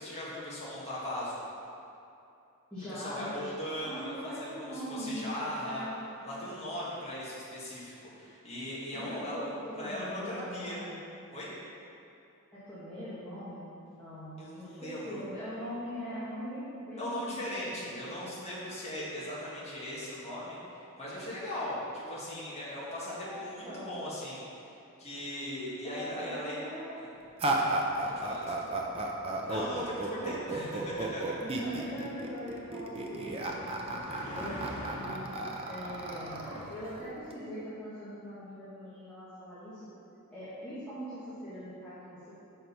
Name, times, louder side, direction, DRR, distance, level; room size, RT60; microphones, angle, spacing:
voice 1, 0.0-1.4 2.9-5.8 6.2-10.8 11.3-11.5 14.4-15.2 17.0-24.4 25.0-26.6 27.0-27.1 28.0-28.4 29.4-31.4, left 1 dB, 30° left, -8 dB, 1.4 m, -39 dB
voice 2, 2.7-3.5 3.8-6.0 8.9-10.9 12.5-18.3 23.1-24.0 25.8-27.0 28.5-28.9 30.1-30.4 31.4-35.2 35.6-36.4 36.7-39.9 40.3-42.4, equal, 5° left, -15 dB, 1.5 m, -41 dB
sound 1, 27.4-37.3, right 2 dB, 25° right, 0.5 m, -34 dB
sound 2, 28.4-36.6, equal, 50° left, 1.4 m, -47 dB
6.4 x 4.5 x 5.3 m, 2.7 s
head